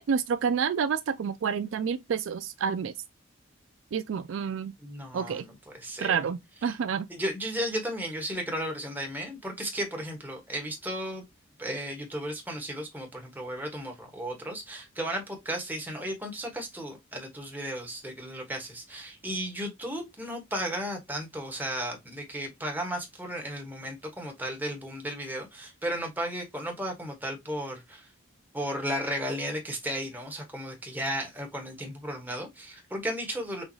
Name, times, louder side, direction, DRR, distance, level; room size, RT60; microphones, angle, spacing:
voice 1, 0.0-2.9 3.9-4.7 5.1-5.5 6.0-7.1, right 6 dB, 65° right, 0.3 m, -29 dB
voice 2, 4.8-6.2 6.7-6.8 7.1-11.2 11.6-28.1 28.5-33.6, equal, 10° right, 1.2 m, -34 dB
6.3 x 2.4 x 3.0 m
head